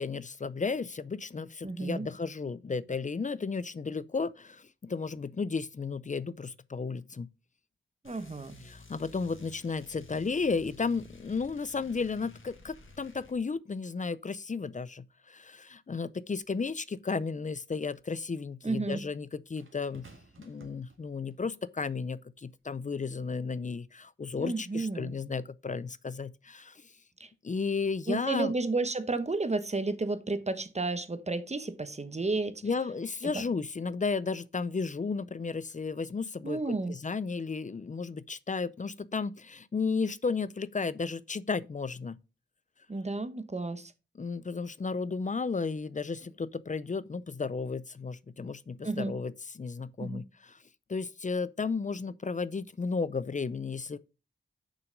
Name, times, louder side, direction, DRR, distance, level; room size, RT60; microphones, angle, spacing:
voice 1, 0.0-7.3 8.6-20.1 20.4-26.8 27.4-28.5 32.6-42.2 44.2-50.6 50.9-54.0, left 4 dB, 40° left, 0.5 m, -33 dB
voice 2, 1.6-2.1 8.0-8.6 18.6-19.0 24.4-25.1 27.2-27.3 28.1-32.6 36.4-36.9 42.9-43.9 48.8-49.1 50.0-50.2, right 3 dB, 35° right, 1.0 m, -32 dB
sound 1, 8.0-13.4, left 2 dB, 85° left, 1.8 m, -53 dB
sound 2, 19.6-21.5 22.4-22.6, right 3 dB, 85° right, 2.0 m, -56 dB
6.8 x 5.9 x 5.1 m
wide cardioid pair, 90°, 20 cm